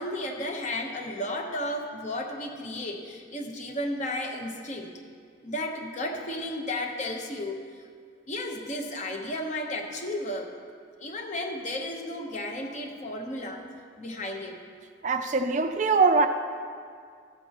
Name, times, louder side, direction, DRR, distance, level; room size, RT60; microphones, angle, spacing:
voice 1, 0.0-4.9 5.4-7.7 8.3-10.5 11.0-13.7 14.0-14.6, left 1 dB, 40° left, 3 dB, 0.9 m, -33 dB
voice 2, 15.0-16.3, right 4 dB, 40° right, 8 dB, 0.4 m, -22 dB
15.0 x 8.7 x 2.9 m, 2.2 s
head